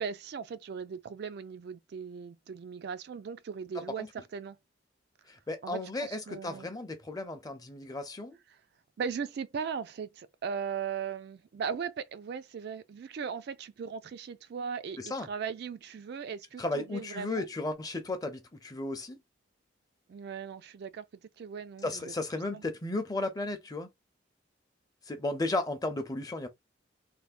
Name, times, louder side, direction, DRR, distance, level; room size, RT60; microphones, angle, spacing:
voice 1, 0.0-4.6 5.6-6.7 9.0-17.4 20.1-21.1 21.4-22.1 22.5-22.6, right 6 dB, 60° right, 0.3 m, -38 dB
voice 2, 3.7-4.1 5.3-8.4 15.0-15.3 16.6-19.2 21.8-23.9 25.1-26.5, left 2 dB, 20° left, 0.5 m, -34 dB
3.3 x 2.1 x 2.4 m
head